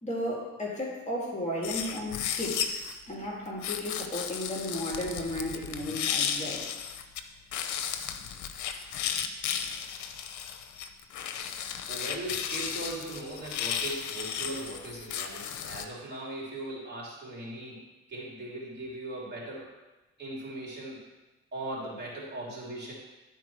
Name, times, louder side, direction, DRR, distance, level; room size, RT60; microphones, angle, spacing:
voice 1, 0.0-2.8 3.1-6.6, left 1 dB, 25° left, -3 dB, 2.2 m, -34 dB
sound 1, 1.6-3.0 3.6-7.2 7.5-15.8, left 8 dB, 75° left, 0.7 m, -34 dB
voice 2, 11.9-17.8 18.1-19.7 20.2-21.1 21.5-22.9, right 1 dB, 35° right, -5 dB, 3.3 m, -39 dB
12.5 x 4.3 x 4.7 m, 1.1 s
cardioid pair, 90°, 30 cm